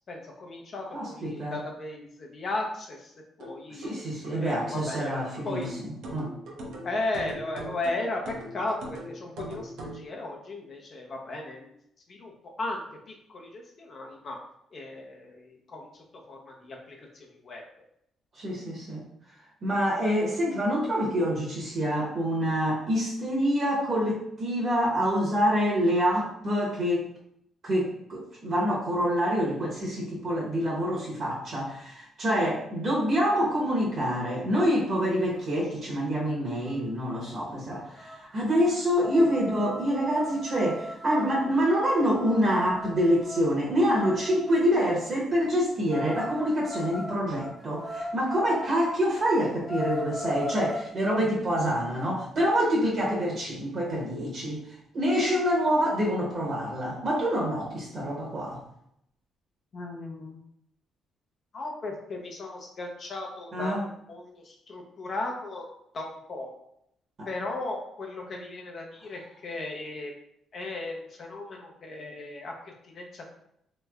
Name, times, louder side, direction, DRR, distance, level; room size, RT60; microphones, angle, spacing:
voice 1, 0.1-4.0 4.4-5.1 5.4-5.7 6.8-11.7 12.1-14.4 14.7-17.6 39.2-39.3 59.7-60.4 61.5-63.8 64.1-65.7 65.9-66.5 67.3-70.1 70.5-73.3, left 2 dB, 50° left, 0 dB, 0.6 m, -36 dB
voice 2, 0.9-1.6 3.7-6.3 18.3-19.0 19.6-27.1 27.6-58.6 63.5-63.8 67.2-67.3, equal, 55° right, -4 dB, 1.0 m, -26 dB
sound 1, 3.4-10.1, right 1 dB, 80° right, 0.7 m, -41 dB
sound 2, 36.7-36.8 37.0-37.3 37.7-44.6 45.9-48.7 49.1-49.2 49.5-50.9, left 1 dB, 10° left, 0.7 m, -38 dB
3.1 x 3.1 x 2.3 m, 0.74 s
cardioid pair, 90°, 0 cm